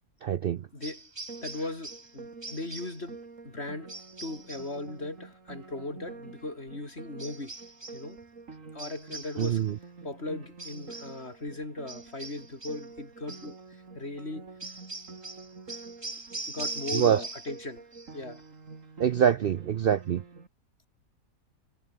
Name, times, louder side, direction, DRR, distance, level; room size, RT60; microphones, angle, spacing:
voice 1, 0.2-0.6 9.4-9.7 16.9-17.2 19.0-20.2, right 8 dB, 75° right, 0.5 m, -24 dB
voice 2, 0.7-1.1 1.4-3.2 3.4-4.0 4.2-7.5 7.9-8.2 8.7-9.7 10.0-14.5 16.5-17.8 18.1-18.4, left 2 dB, 40° left, 5.4 m, -38 dB
sound 1, 0.8-2.1 2.4-3.0 3.9-4.8 7.2-8.1 8.8-9.7 10.6-11.2 11.9-12.9 13.3-13.5 14.6-17.6 17.9-18.4, right 3 dB, 20° right, 1.3 m, -41 dB
Piano, 1.3-20.5, right 4 dB, 55° right, 3.0 m, -48 dB
omnidirectional pair, 1.6 m